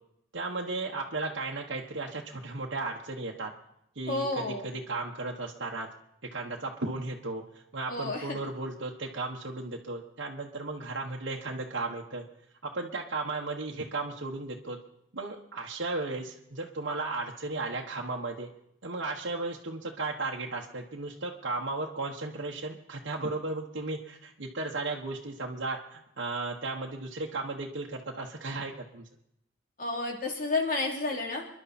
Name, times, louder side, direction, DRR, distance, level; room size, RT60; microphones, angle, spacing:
voice 1, 0.3-3.5 4.0-5.9 6.3-12.2 12.6-14.8 15.1-18.5 18.8-29.0, right 3 dB, 70° right, -1 dB, 1.3 m, -35 dB
voice 2, 4.1-4.7 7.9-8.4 29.8-31.5, left 3 dB, 45° left, 1 dB, 3.1 m, -31 dB
27.5 x 11.5 x 4.3 m, 0.79 s
head